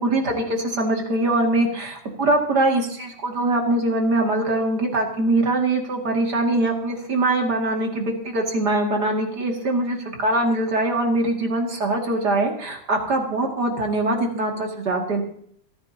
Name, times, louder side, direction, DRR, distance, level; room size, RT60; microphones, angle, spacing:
voice 1, 0.0-15.2, right 2 dB, 35° right, 1 dB, 2.2 m, -22 dB
28.5 x 9.7 x 2.8 m, 0.66 s
omnidirectional pair, 4.1 m